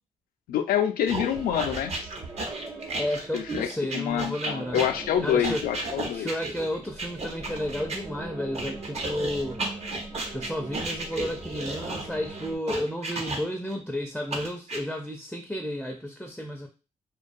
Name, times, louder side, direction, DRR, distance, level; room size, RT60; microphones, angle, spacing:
voice 1, 0.5-1.9 3.3-6.3, left 9 dB, 85° left, 6 dB, 0.4 m, -27 dB
sound 1, 1.1-8.0 8.5-13.7 14.3-14.8, right 2 dB, 45° right, 0.7 m, -34 dB
sound 2, 1.2-12.6, right 3 dB, 80° right, 0.9 m, -42 dB
voice 2, 2.9-4.8 5.2-5.7 6.0-9.6 10.3-16.7, left 1 dB, ahead, 2 dB, 0.4 m, -32 dB
2.3 x 2.2 x 2.5 m, 0.31 s
cardioid pair, 65°, 15 cm